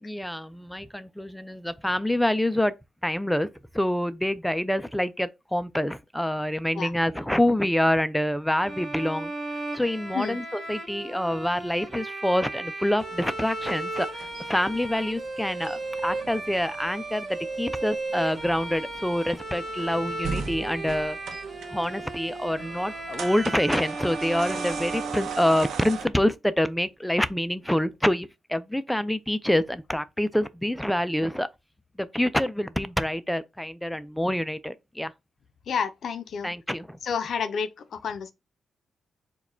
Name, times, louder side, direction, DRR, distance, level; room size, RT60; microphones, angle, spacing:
voice 1, 0.0-2.7 3.0-3.5 3.7-9.3 9.7-21.2 21.7-31.5 32.0-35.1 36.4-37.0, left 1 dB, 5° left, 0.3 m, -26 dB
Bowed string instrument, 8.6-25.8, right 2 dB, 15° right, 1.6 m, -35 dB
sound 1, 13.0-26.1, right 6 dB, 75° right, 0.7 m, -39 dB
voice 2, 35.7-36.5 37.0-38.3, left 6 dB, 55° left, 0.5 m, -30 dB
4.6 x 2.2 x 4.2 m
wide cardioid pair, 155°, 0 cm